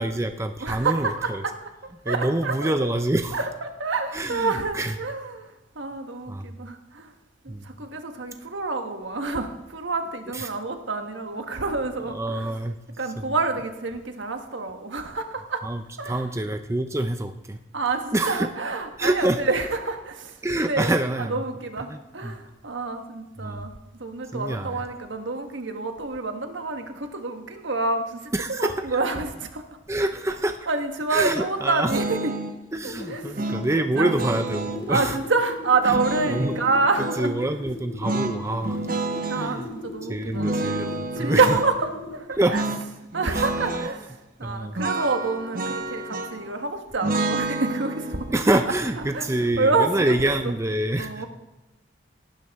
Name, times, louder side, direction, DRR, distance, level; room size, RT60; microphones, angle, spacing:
voice 1, 0.0-1.4 2.0-3.4 4.1-4.9 6.3-6.4 7.5-7.6 10.3-10.5 12.1-12.7 13.2-13.3 15.6-17.6 18.1-18.5 19.0-19.4 20.4-21.4 21.9-22.4 23.4-23.7 24.3-24.8 28.3-28.9 29.9-30.7 31.1-31.9 32.7-35.2 35.9-36.0 36.3-36.6 37.2-38.9 39.2-39.7 40.1-41.6 42.4-42.6 43.3-43.8 44.4-44.9 48.3-51.2, right 1 dB, 15° right, 7 dB, 0.5 m, -26 dB
voice 2, 0.6-1.7 2.0-2.9 3.3-7.1 7.4-12.5 13.0-15.6 16.0-16.2 17.7-20.9 21.3-29.6 30.7-32.3 32.8-33.5 33.9-34.1 34.9-37.3 39.3-40.5 41.1-42.6 43.1-48.4 49.1-50.1 50.4-50.5 51.0-51.3, right 3 dB, 80° right, 6 dB, 1.4 m, -27 dB
sound 1, 31.9-32.6 33.4-34.8 35.8-37.2 38.0-39.5 40.3-41.7 42.5-42.9 43.1-43.9 44.8-46.5 47.0-50.1, right 2 dB, 45° right, 1.0 m, -30 dB
sound 2, 32.8-42.2, left 1 dB, 70° left, 3.7 m, -40 dB
18.5 x 12.0 x 3.6 m, 0.99 s
head